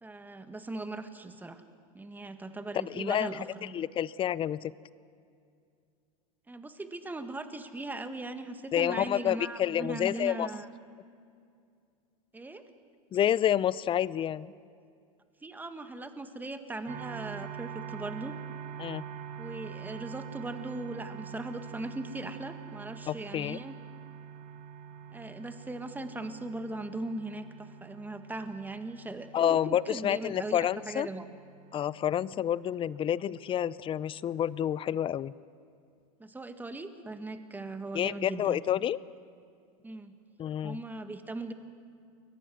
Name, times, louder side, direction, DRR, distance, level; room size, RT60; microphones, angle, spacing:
voice 1, 0.0-1.6 1.9-3.8 6.5-10.7 12.3-12.6 15.4-18.4 19.4-23.7 25.1-31.2 36.2-38.6 39.8-40.1 40.6-41.5, right 2 dB, 10° right, 9 dB, 1.7 m, -39 dB
voice 2, 2.8-4.7 8.7-10.5 13.1-14.5 18.8-19.0 23.1-23.6 29.3-31.1 31.7-35.3 37.9-39.0 40.4-40.8, left 10 dB, 25° left, 20 dB, 0.6 m, -29 dB
sound 1, 16.9-34.6, right 8 dB, 45° right, 2.0 m, -46 dB
29.5 x 23.0 x 6.3 m, 2.4 s
hypercardioid pair, 110°, 19 cm